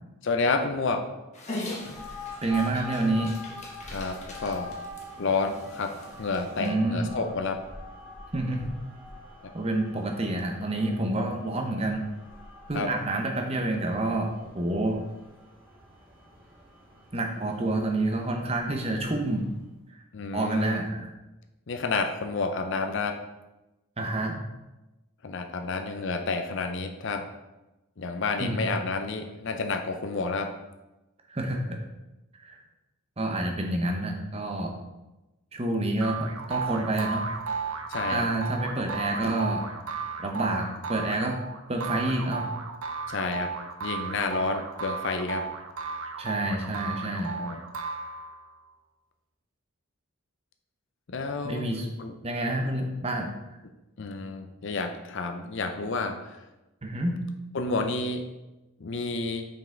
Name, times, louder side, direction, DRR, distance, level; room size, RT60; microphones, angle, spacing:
voice 1, 0.2-1.1 3.9-4.7 5.2-7.6 12.7-12.9 20.1-20.9 21.7-23.2 25.2-27.3 28.0-30.5 37.9-38.3 43.1-43.5 43.8-45.5 47.4-47.6 51.1-51.7 52.0-52.1 54.0-56.4 57.5-58.2 58.8-59.5, left 3 dB, 55° left, 6 dB, 0.5 m, -30 dB
Dog, 1.3-6.7, left 2 dB, 30° left, 1.1 m, -41 dB
sound 1, 1.7-19.6, left 2 dB, 5° right, 1.8 m, -45 dB
voice 2, 2.4-3.3 6.6-7.1 8.3-8.7 9.5-12.0 12.7-15.0 17.1-19.4 20.3-21.1 24.0-24.4 28.4-28.6 31.3-31.8 33.2-34.7 35.5-37.3 38.1-39.7 40.2-41.4 41.7-42.5 46.2-47.3 51.4-51.9 52.2-53.3 56.8-57.1, right 2 dB, 25° right, 2 dB, 0.8 m, -28 dB
sound 2, 36.0-48.5, right 5 dB, 70° right, 0.7 m, -34 dB
5.5 x 5.3 x 3.8 m, 1.0 s
head